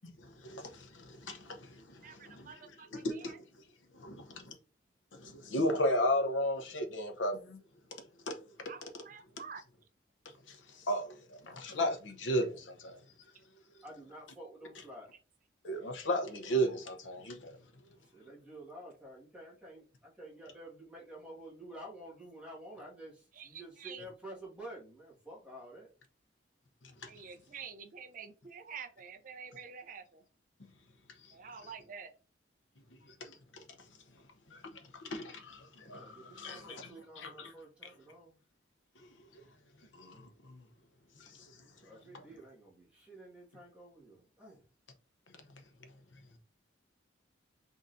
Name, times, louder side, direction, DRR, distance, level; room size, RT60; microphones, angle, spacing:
voice 1, 0.2-3.7 3.9-4.6 5.1-7.6 7.9-8.7 10.2-13.8 14.8-14.9 15.6-18.3 26.8-27.1 30.6-30.7 31.1-31.4 31.6-31.7 32.9-37.5 37.8-37.9 38.9-39.5 39.8-40.7 41.1-42.3 45.3-46.4, equal, 85° left, 0.8 m, -37 dB
voice 2, 2.0-3.1 8.7-8.8 9.1-9.6 23.4-24.1 27.1-30.2 31.3-32.1, right 6 dB, 45° right, 0.5 m, -48 dB
voice 3, 13.8-15.1 18.1-25.9 35.9-38.4 41.8-44.6, right 1 dB, 5° right, 1.6 m, -50 dB
3.9 x 3.6 x 2.6 m
head